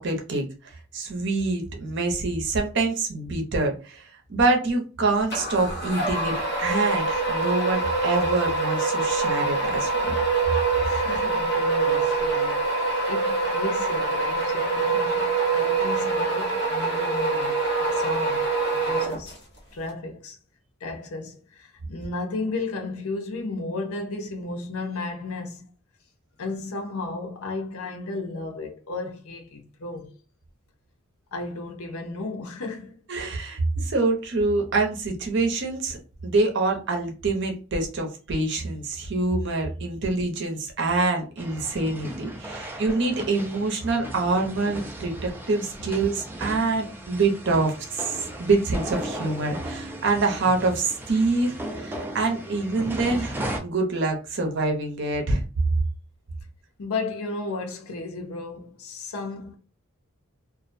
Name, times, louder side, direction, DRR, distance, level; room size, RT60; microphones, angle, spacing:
voice 1, 0.0-10.1 11.1-11.3 33.1-36.0 36.2-47.7 48.0-55.4, right 3 dB, 55° right, 0.6 m, -26 dB
sound 1, 5.3-19.6, right 3 dB, 55° left, 0.9 m, -25 dB
voice 2, 10.8-18.5 18.7-19.3 19.7-20.4 20.8-25.6 26.4-30.1 31.3-33.0 45.8-45.9 47.5-47.7 56.8-59.6, left 3 dB, 85° left, 0.6 m, -34 dB
sound 2, 41.4-53.6, right 1 dB, 10° right, 0.3 m, -36 dB
2.4 x 2.1 x 2.5 m
head